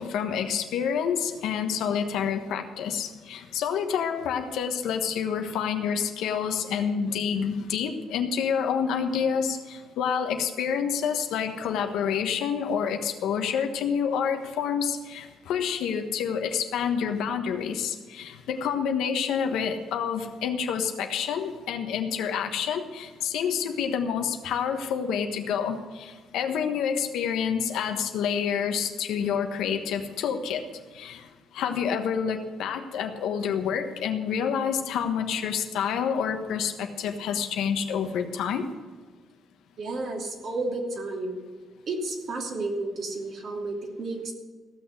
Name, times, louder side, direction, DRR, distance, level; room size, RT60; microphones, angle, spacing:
voice 1, 0.0-30.6 30.9-31.3 31.5-38.7, left 7 dB, 85° left, 5 dB, 1.3 m, -28 dB
voice 2, 39.8-41.4 41.9-44.3, right 2 dB, 60° right, 0 dB, 2.9 m, -32 dB
15.5 x 6.5 x 8.1 m, 1.4 s
cardioid pair, 90°, 0 cm